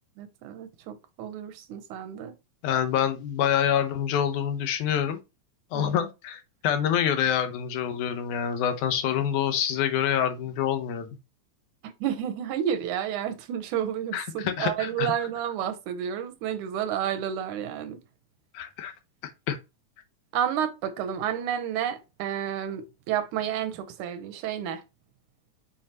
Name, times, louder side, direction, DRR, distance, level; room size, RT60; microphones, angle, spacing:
voice 1, 0.2-2.3 5.7-6.0 11.8-18.0 20.3-24.8, right 9 dB, 85° right, 2.3 m, -31 dB
voice 2, 2.6-5.2 5.7-11.2 14.1-15.1 18.5-18.9 19.5-19.6, left 9 dB, 85° left, 2.3 m, -26 dB
7.2 x 4.7 x 2.9 m
omnidirectional pair, 3.4 m